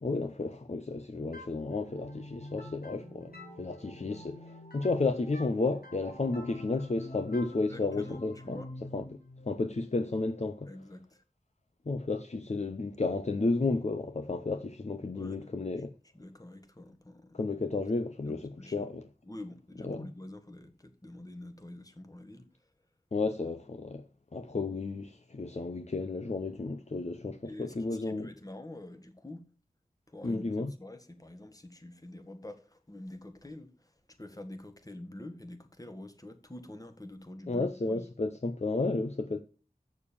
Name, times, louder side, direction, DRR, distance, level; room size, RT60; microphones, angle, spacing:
voice 1, 0.0-3.3 3.6-8.6 8.9-9.0 9.5-10.7 11.9-15.9 17.3-19.0 19.8-20.1 23.1-24.0 24.3-28.3 30.2-30.7 37.5-39.4, left 3 dB, 50° left, 0.7 m, -32 dB
sound 1, 1.3-10.9, left 1 dB, 90° left, 3.5 m, -48 dB
voice 2, 7.7-8.7 10.7-11.2 15.1-15.5 16.1-17.4 18.2-18.9 19.2-22.5 27.4-29.5 30.1-38.1, left 1 dB, 25° left, 1.5 m, -47 dB
7.0 x 6.8 x 6.8 m
wide cardioid pair, 50°, 15 cm